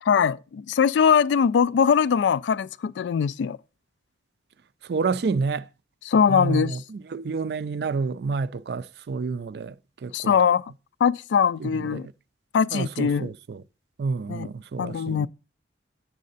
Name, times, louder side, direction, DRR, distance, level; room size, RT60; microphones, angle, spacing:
voice 1, 0.0-3.6 6.1-6.8 10.1-10.6 11.0-12.1 12.5-13.3 14.3-14.5 14.8-15.3, left 7 dB, 75° left, 0.3 m, -21 dB
voice 2, 4.8-5.7 6.3-9.8 10.0-10.4 11.6-12.1 12.7-13.6 14.0-15.3, right 4 dB, 60° right, 0.4 m, -29 dB
7.5 x 7.3 x 4.0 m
head